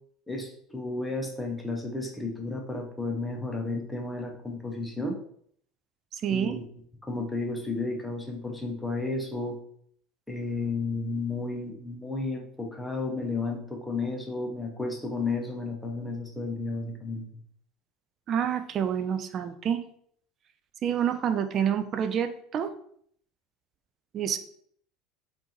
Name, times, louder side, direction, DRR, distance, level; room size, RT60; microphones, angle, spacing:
voice 1, 0.3-5.2 6.3-6.6 7.0-9.6 10.3-17.2, left 3 dB, 5° left, 1 dB, 0.8 m, -32 dB
voice 2, 6.1-6.5 18.3-19.8 20.8-22.7 24.1-24.4, right 8 dB, 40° right, 9 dB, 0.4 m, -28 dB
3.4 x 2.6 x 2.9 m, 0.64 s
figure-of-eight pair, 70°, 0 cm